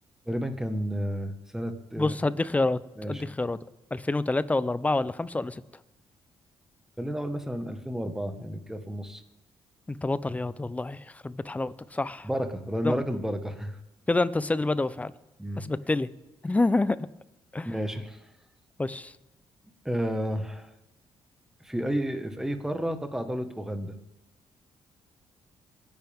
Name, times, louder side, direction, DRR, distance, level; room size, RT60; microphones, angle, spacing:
voice 1, 0.2-2.2 3.0-3.2 7.0-9.2 12.2-13.8 15.4-15.7 17.6-18.2 19.8-20.7 21.6-24.0, equal, 5° right, 7 dB, 1.6 m, -31 dB
voice 2, 2.0-3.6 3.9-5.6 9.9-12.3 12.8-12.9 14.1-15.1 15.6-16.1 16.4-17.0 17.5-17.7 18.8-19.1, left 2 dB, 15° left, 16 dB, 0.6 m, -27 dB
27.0 x 10.5 x 3.7 m, 0.96 s
cardioid pair, 100°, 10 cm